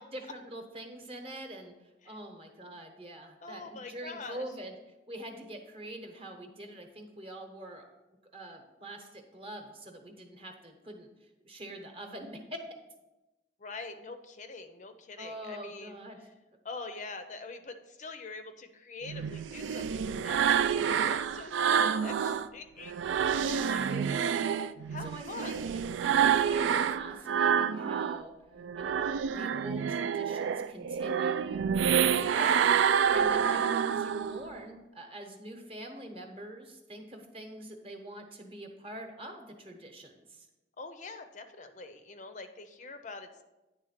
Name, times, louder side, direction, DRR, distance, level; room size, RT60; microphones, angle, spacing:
voice 1, 0.0-4.8 5.1-7.8 8.3-12.6 15.2-16.3 23.4-24.6 25.0-28.3 28.8-31.6 32.3-32.8 33.1-40.5, right 1 dB, 30° right, 4 dB, 1.0 m, -45 dB
voice 2, 3.4-4.4 13.6-16.0 16.6-24.3 24.9-25.7 32.1-32.6 33.0-33.2 40.8-43.4, left 3 dB, 40° left, 8 dB, 0.5 m, -44 dB
sound 1, 19.1-22.5 22.9-28.2 28.6-34.5, right 7 dB, 90° right, 0.3 m, -28 dB
9.7 x 3.6 x 5.7 m, 1.0 s
head